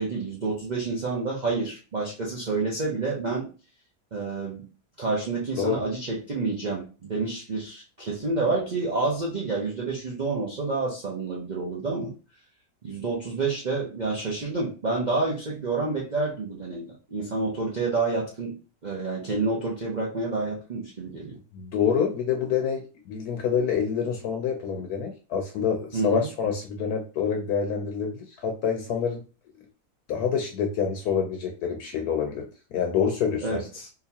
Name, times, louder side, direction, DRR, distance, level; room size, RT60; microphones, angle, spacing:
voice 1, 0.0-3.5 4.1-4.6 5.0-12.1 12.8-18.6 18.8-21.3 25.9-26.3 33.4-33.9, right 3 dB, 45° right, -4 dB, 0.6 m, -29 dB
voice 2, 21.5-29.2 30.1-33.7, left 7 dB, 75° left, 4 dB, 1.1 m, -27 dB
3.9 x 2.7 x 2.8 m, 0.34 s
omnidirectional pair, 1.7 m